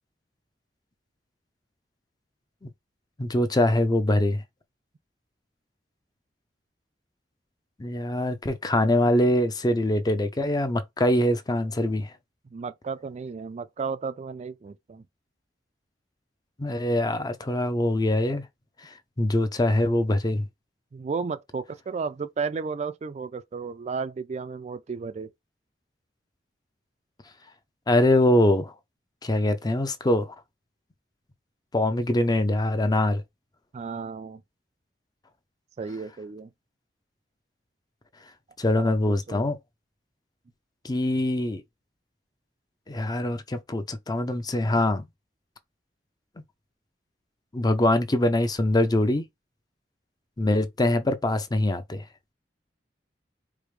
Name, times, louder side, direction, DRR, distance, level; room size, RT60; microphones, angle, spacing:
voice 1, 3.2-4.4 7.8-12.1 16.6-18.4 19.2-20.4 27.9-28.7 29.2-30.3 31.7-33.2 38.6-39.6 40.8-41.6 42.9-45.0 47.5-49.3 50.4-52.0, left 1 dB, 25° left, 0.5 m, -23 dB
voice 2, 12.5-15.0 20.9-25.3 33.7-34.4 35.8-36.5 38.7-39.5, right 5 dB, 40° right, 0.3 m, -33 dB
4.8 x 2.1 x 3.1 m
head